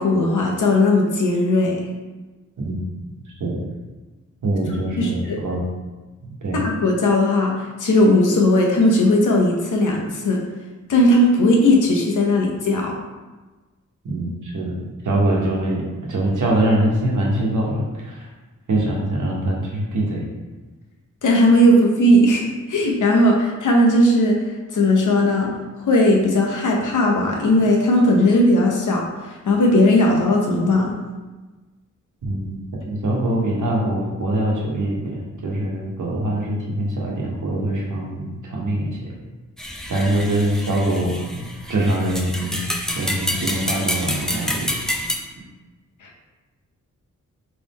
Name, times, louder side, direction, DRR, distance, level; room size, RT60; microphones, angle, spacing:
voice 1, 0.0-1.8 5.0-5.4 6.5-10.4 10.9-13.0 21.2-24.4 24.7-25.5 25.8-29.0 29.5-31.0 46.0-46.2, left 1 dB, 85° left, -1 dB, 0.9 m, -17 dB
voice 2, 4.4-5.6 6.2-6.6 14.0-18.3 18.7-20.3 32.2-39.2 39.9-41.4 41.7-42.6 42.9-44.7, right 1 dB, 85° right, -3 dB, 1.1 m, -23 dB
sound 1, 39.6-45.1, left 1 dB, ahead, 0.6 m, -28 dB
3.5 x 3.3 x 4.2 m, 1.2 s
wide cardioid pair, 90°, 30 cm